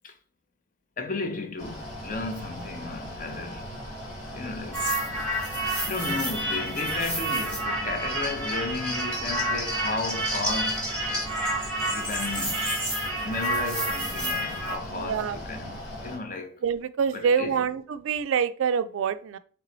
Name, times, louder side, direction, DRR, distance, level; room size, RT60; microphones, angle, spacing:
voice 1, 1.0-3.6 4.3-4.9 5.8-10.9 11.9-12.8 13.2-16.6 17.1-17.7, left 3 dB, 40° left, 0.5 m, -34 dB
Mechanical fan, 1.6-16.2, equal, 70° left, 1.4 m, -39 dB
sound 1, 4.7-14.8, right 1 dB, 5° left, 0.9 m, -29 dB
voice 2, 14.9-15.4 16.6-19.4, right 6 dB, 75° right, 0.3 m, -26 dB
3.3 x 3.1 x 3.9 m
head